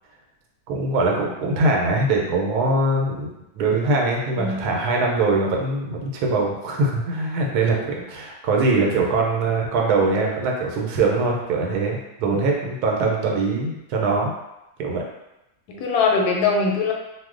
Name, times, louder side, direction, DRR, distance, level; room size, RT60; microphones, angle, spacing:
voice 1, 0.7-3.3 3.5-14.3 14.8-15.0, right 3 dB, 85° right, 0 dB, 1.1 m, -22 dB
voice 2, 4.4-4.7 12.3-12.4 15.7-16.9, left 4 dB, 85° left, 0 dB, 1.1 m, -22 dB
2.6 x 2.1 x 3.6 m, 0.92 s
omnidirectional pair, 1.6 m